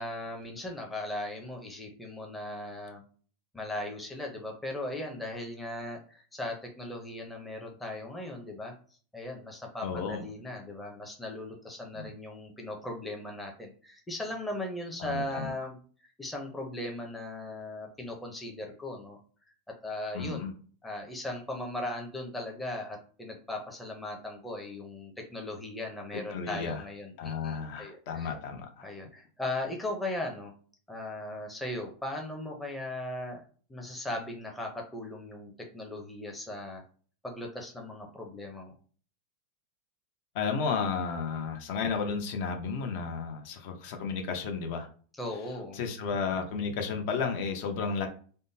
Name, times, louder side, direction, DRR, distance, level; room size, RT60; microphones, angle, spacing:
voice 1, 0.0-3.0 3.5-8.7 9.1-15.8 16.2-19.2 19.8-20.5 20.8-28.3 28.8-30.5 30.9-33.4 33.7-36.8 37.2-38.7 45.1-45.8, left 1 dB, 5° left, 0 dB, 0.6 m, -38 dB
voice 2, 9.8-10.3 12.0-12.1 15.0-15.5 20.1-20.5 26.3-26.8 27.2-28.9 40.3-44.9 45.7-48.1, left 5 dB, 55° left, 5 dB, 0.6 m, -33 dB
3.5 x 2.1 x 2.6 m, 0.42 s
supercardioid pair, 155°, 0 cm